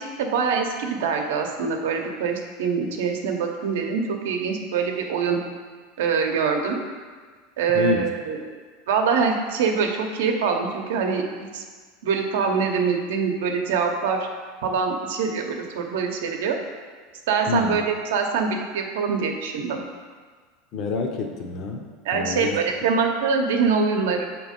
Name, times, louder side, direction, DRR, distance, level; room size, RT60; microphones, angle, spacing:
voice 1, 0.0-5.4 6.0-6.8 7.6-8.4 8.9-11.6 12.0-14.3 14.6-16.6 17.3-17.8 18.1-19.8 22.1-24.2, right 5 dB, 80° right, 3 dB, 0.7 m, -24 dB
voice 2, 7.7-8.1 17.5-17.8 20.7-22.6, left 5 dB, 30° left, 2 dB, 0.5 m, -28 dB
6.3 x 2.9 x 5.2 m, 1.6 s
supercardioid pair, 170°, 0 cm